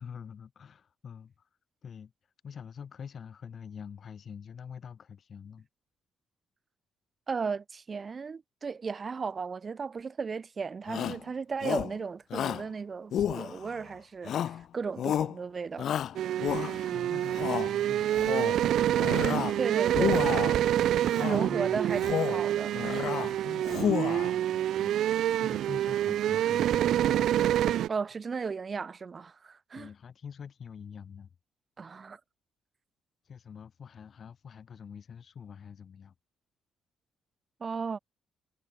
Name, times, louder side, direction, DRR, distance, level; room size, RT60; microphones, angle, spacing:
voice 1, 0.0-1.5 1.8-2.1 2.4-5.7 16.9-18.9 20.7-22.0 23.2-27.7 29.8-31.3 33.2-36.1, left 7 dB, 50° left, 7.3 m, -46 dB
voice 2, 7.3-15.9 19.6-20.2 21.2-23.3 27.9-29.9 31.8-32.2 37.6-38.0, right 5 dB, 40° right, 2.0 m, -35 dB
Shout, 10.9-11.2 11.6-12.0 12.3-12.7 13.1-13.8 14.3-14.6 15.0-15.4 15.8-16.9 17.3-17.7 18.1-18.6 19.0-19.6 19.9-20.6 21.1-21.5 21.9-22.4 22.8-23.3 23.6-24.3, left 10 dB, 65° left, 0.4 m, -31 dB
sound 1, 16.1-27.9, right 11 dB, 75° right, 1.3 m, -27 dB
cardioid pair, 90°, 0 cm